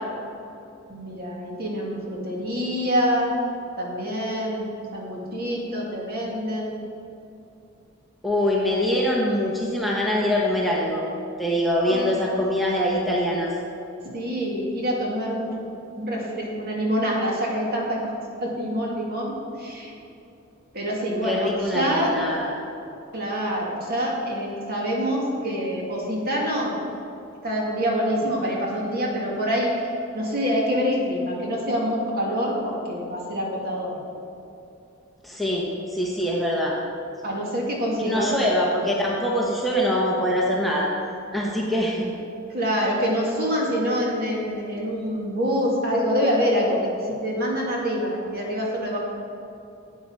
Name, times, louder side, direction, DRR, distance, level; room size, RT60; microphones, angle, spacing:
voice 1, 0.9-3.3 3.8-6.7 11.8-12.2 14.1-15.5 15.9-18.1 18.4-19.9 20.7-22.1 23.1-26.8 27.4-34.0 37.2-38.3 42.5-49.0, equal, 45° right, -2 dB, 2.2 m, -26 dB
voice 2, 8.2-11.0 11.4-13.5 21.2-22.6 35.2-36.8 38.0-40.9 41.3-42.1, equal, ahead, -4 dB, 1.1 m, -24 dB
12.0 x 8.5 x 4.8 m, 2.8 s
head